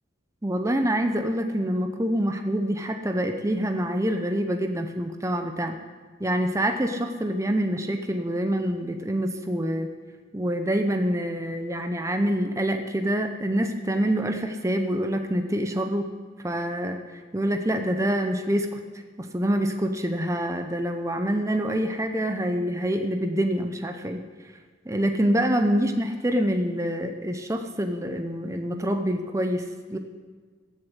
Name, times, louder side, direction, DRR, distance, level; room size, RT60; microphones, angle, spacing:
voice 1, 0.4-5.8 6.2-9.9 10.3-16.1 16.4-17.0 17.3-18.8 19.2-24.2 24.9-30.0, equal, 15° right, 6 dB, 0.7 m, -26 dB
15.0 x 7.1 x 8.3 m, 1.5 s
head